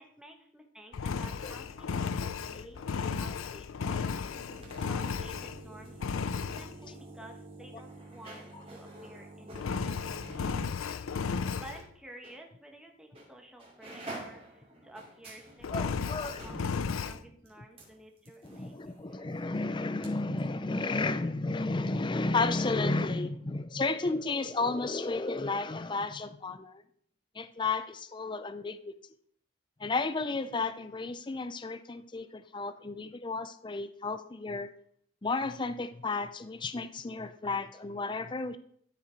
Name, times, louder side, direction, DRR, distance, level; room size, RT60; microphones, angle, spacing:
voice 1, 0.0-4.1 4.5-6.0 6.4-9.6 9.8-10.5 11.2-16.7 17.0-18.8, right 1 dB, 5° right, 1 dB, 1.2 m, -52 dB
Engine, 0.9-5.7 6.0-6.7 9.5-11.8 15.6-17.2, left 5 dB, 85° left, 0.5 m, -34 dB
sound 1, 4.1-11.9 12.2-12.4 13.1-13.3 13.6-20.1 20.4-20.5, right 2 dB, 30° right, 2.7 m, -48 dB
voice 2, 15.7-16.4 18.4-26.8 27.4-28.9 29.8-34.7 35.2-38.6, left 3 dB, 25° left, 12 dB, 0.4 m, -32 dB
13.0 x 5.7 x 4.5 m, 0.63 s
head